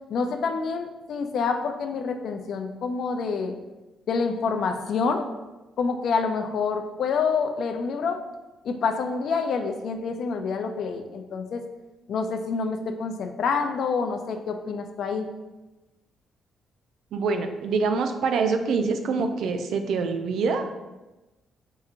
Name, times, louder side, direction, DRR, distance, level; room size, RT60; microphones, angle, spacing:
voice 1, 0.1-3.5 4.1-5.3 5.8-8.2 8.6-11.6 12.1-15.3, left 5 dB, 65° left, 6 dB, 0.4 m, -27 dB
voice 2, 17.1-20.7, right 4 dB, 75° right, 6 dB, 0.4 m, -25 dB
4.6 x 2.7 x 2.5 m, 1.1 s
cardioid pair, 90°, 0 cm